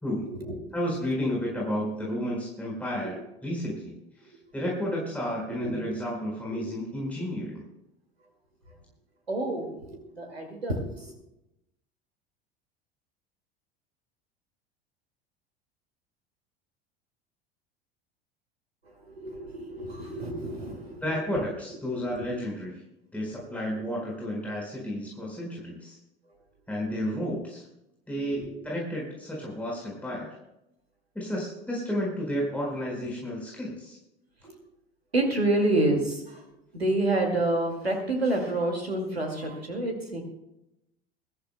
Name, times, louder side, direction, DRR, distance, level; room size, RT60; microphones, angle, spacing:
voice 1, 0.2-0.7 3.0-3.1 3.7-3.8 5.5-6.0 6.5-6.7 9.3-11.1 18.9-21.0 21.3-21.4 22.1-22.3 23.8-23.9 28.4-28.5 34.4-34.5 35.1-36.4 36.7-40.2, right 2 dB, 85° right, 2 dB, 2.3 m, -29 dB
voice 2, 0.7-3.9 4.2-7.6 21.0-22.7 23.1-26.0 26.7-27.6 28.1-30.4 31.1-34.0, equal, 5° left, -4 dB, 4.5 m, -32 dB
22.0 x 14.0 x 2.2 m, 0.87 s
figure-of-eight pair, 75°, 30 cm